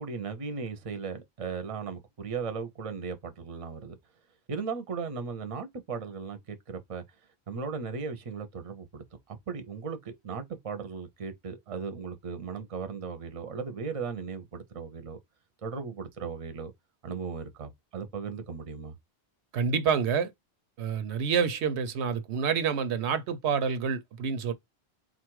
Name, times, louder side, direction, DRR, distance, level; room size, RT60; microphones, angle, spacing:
voice 1, 0.0-4.0 4.5-7.0 7.5-15.2 15.6-16.7 17.0-18.9, right 5 dB, 40° right, 0.6 m, -37 dB
voice 2, 19.5-20.3 20.8-24.5, right 6 dB, 85° right, 0.9 m, -28 dB
4.0 x 2.5 x 4.6 m
omnidirectional pair, 1.1 m